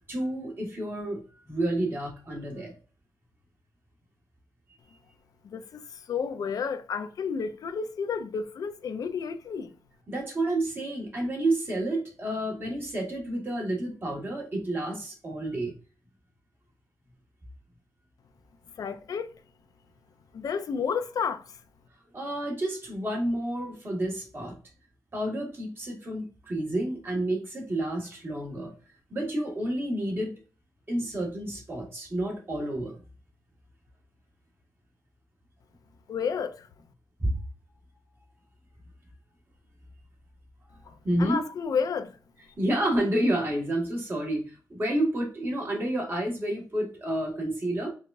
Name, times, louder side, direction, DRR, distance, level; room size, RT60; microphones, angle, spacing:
voice 1, 0.1-2.7 10.1-15.7 22.1-24.6 25.1-28.7 29.1-30.4 30.9-33.0 41.0-41.4 42.6-47.9, right 1 dB, 35° right, 1.5 m, -30 dB
voice 2, 5.4-9.7 18.8-19.3 20.3-21.5 36.1-36.7 40.9-42.1, left 6 dB, 60° left, 0.4 m, -31 dB
4.7 x 2.3 x 2.5 m
wide cardioid pair, 115°, 7 cm